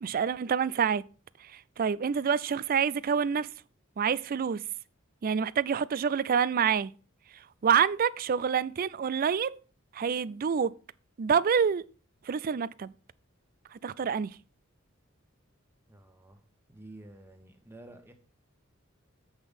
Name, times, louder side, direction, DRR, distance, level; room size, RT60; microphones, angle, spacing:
voice 1, 0.0-1.0 1.8-3.5 4.0-4.6 5.2-6.9 7.6-9.6 9.9-10.7 11.2-11.9 12.3-12.9 13.8-14.3, right 7 dB, 45° right, 0.4 m, -27 dB
voice 2, 15.9-16.4 16.7-18.1, right 1 dB, 10° right, 1.4 m, -50 dB
8.1 x 5.9 x 5.3 m
head